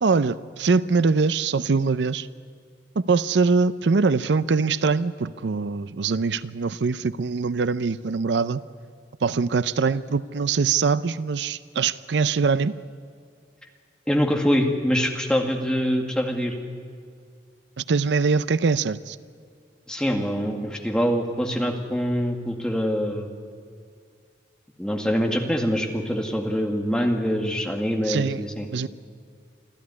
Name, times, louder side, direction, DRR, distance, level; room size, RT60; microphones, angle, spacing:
voice 1, 0.0-2.3 3.0-8.6 9.2-12.7 17.8-19.2 28.0-28.4 28.7-28.9, right 4 dB, 80° right, 16 dB, 0.5 m, -23 dB
voice 2, 14.1-16.6 19.9-23.3 24.8-28.7, equal, 5° left, 2 dB, 2.0 m, -24 dB
25.5 x 14.0 x 9.7 m, 2.2 s
head